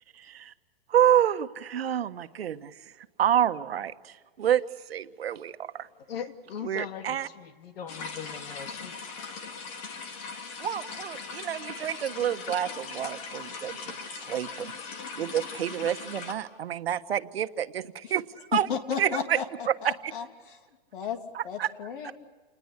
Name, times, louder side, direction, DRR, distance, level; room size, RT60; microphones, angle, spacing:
voice 1, 0.2-0.5 0.9-2.8 3.2-4.6 4.9-5.9 6.6-7.3 10.6-13.9 14.2-14.7 15.2-18.2 18.5-18.7 19.0-19.4 19.7-19.8 20.0-20.1 21.3-21.7 22.0-22.1, right 10 dB, 90° right, 10 dB, 1.5 m, -28 dB
voice 2, 6.1-8.9, left 7 dB, 75° left, 7 dB, 2.8 m, -39 dB
sound 1, 7.9-16.3, left 5 dB, 35° left, 2.6 m, -39 dB
voice 3, 18.5-19.4 19.8-20.6 20.9-21.2 21.4-22.1, left 7 dB, 55° left, 6 dB, 3.1 m, -33 dB
29.0 x 20.5 x 8.4 m, 1.4 s
hypercardioid pair, 165°, 30 cm